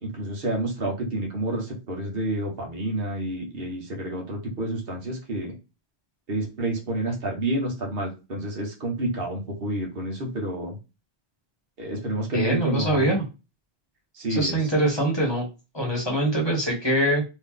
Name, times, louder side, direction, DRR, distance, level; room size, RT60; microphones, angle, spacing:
voice 1, 0.0-5.6 6.3-10.8 11.8-13.1 14.2-14.6, right 1 dB, 60° right, 1 dB, 1.3 m, -29 dB
voice 2, 12.3-13.2 14.3-15.5 15.7-17.2, right 1 dB, 25° left, -2 dB, 1.2 m, -23 dB
3.0 x 2.7 x 3.7 m, 0.28 s
omnidirectional pair, 1.1 m